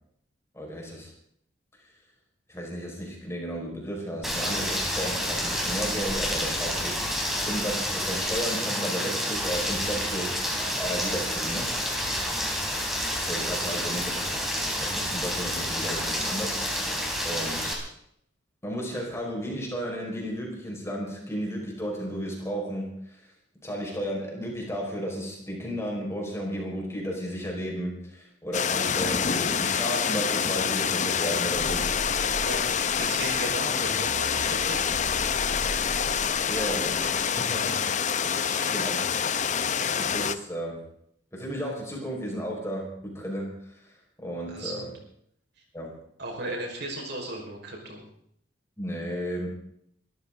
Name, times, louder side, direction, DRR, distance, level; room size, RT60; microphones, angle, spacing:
voice 1, 0.5-1.1 2.5-7.1 7.4-11.8 12.9-14.3 14.7-16.6 17.2-17.8 18.6-23.3 23.6-31.9 36.4-37.8 38.7-39.2 39.9-40.9 41.3-43.9 44.2-44.9 45.7-45.9 48.8-49.5, equal, 15° left, -2 dB, 5.4 m, -34 dB
Rain, 4.2-17.7, equal, ahead, 3.9 m, -29 dB
sound 1, 28.5-40.3, left 7 dB, 40° left, 0.7 m, -26 dB
sound 2, 31.5-37.6, right 1 dB, 15° right, 2.8 m, -40 dB
voice 2, 32.4-34.8 38.2-38.7 44.5-44.9 46.2-48.0, right 2 dB, 60° right, 0 dB, 5.2 m, -36 dB
24.0 x 14.0 x 4.0 m, 0.69 s
head